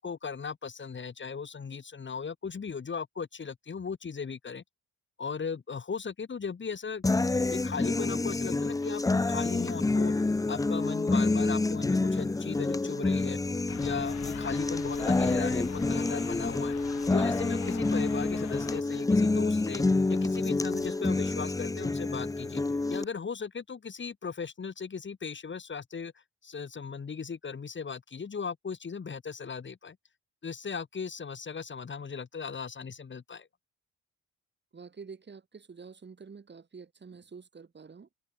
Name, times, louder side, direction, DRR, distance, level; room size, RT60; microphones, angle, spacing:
voice 1, 0.0-4.6 5.2-7.0 7.5-10.1 10.5-13.4 13.8-16.7 17.1-19.8 20.1-22.6 22.9-30.0 30.4-33.5, left 5 dB, 40° left, 5.6 m, -37 dB
sound 1, 7.0-23.0, left 3 dB, 10° left, 0.6 m, -28 dB
sound 2, 13.7-18.8, left 11 dB, 70° left, 2.9 m, -44 dB
voice 2, 34.7-38.1, right 5 dB, 35° right, 7.2 m, -48 dB
cardioid pair, 90°, 30 cm